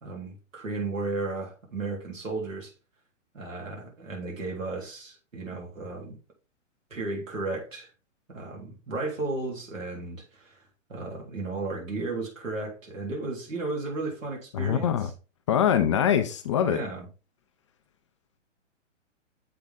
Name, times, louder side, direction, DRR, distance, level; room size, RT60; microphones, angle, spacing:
voice 1, 0.0-2.7 3.3-6.2 6.9-7.9 8.3-10.6 10.9-15.1 16.6-17.1, right 3 dB, 85° right, 3.4 m, -34 dB
voice 2, 14.5-15.1 15.5-16.8, left 9 dB, 25° left, 0.4 m, -23 dB
7.6 x 4.0 x 3.6 m
figure-of-eight pair, 125°, 38 cm